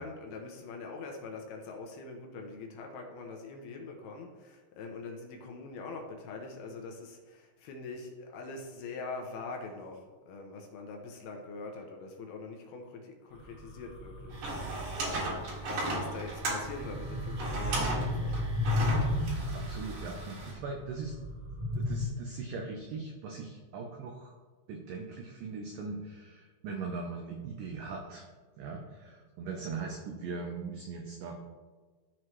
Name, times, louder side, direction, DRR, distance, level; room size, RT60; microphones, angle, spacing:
voice 1, 0.0-19.4, left 3 dB, 75° left, 2 dB, 2.6 m, -44 dB
sound 1, 13.3-22.0, left 1 dB, 40° left, 0.7 m, -35 dB
sound 2, 14.3-20.5, right 2 dB, 55° right, 3.0 m, -36 dB
voice 2, 19.5-21.1 21.8-24.4 24.7-28.3 28.6-31.3, right 4 dB, 85° right, 1 dB, 1.9 m, -40 dB
13.5 x 4.7 x 3.1 m, 1.3 s
omnidirectional pair, 5.0 m